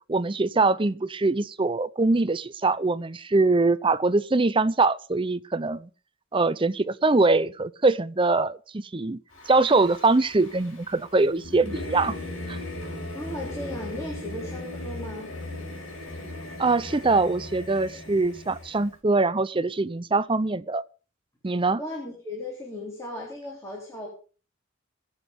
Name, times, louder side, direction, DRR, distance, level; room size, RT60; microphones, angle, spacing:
voice 1, 0.1-5.9 6.3-9.2 9.5-12.1 12.5-12.6 16.6-20.8 21.4-21.8, right 3 dB, 25° right, 0.6 m, -23 dB
Singing / Musical instrument, 9.3-18.9, left 1 dB, 75° left, 5.8 m, -38 dB
voice 2, 13.1-15.3 21.8-24.1, left 1 dB, 15° left, 3.9 m, -36 dB
20.5 x 8.1 x 5.3 m
head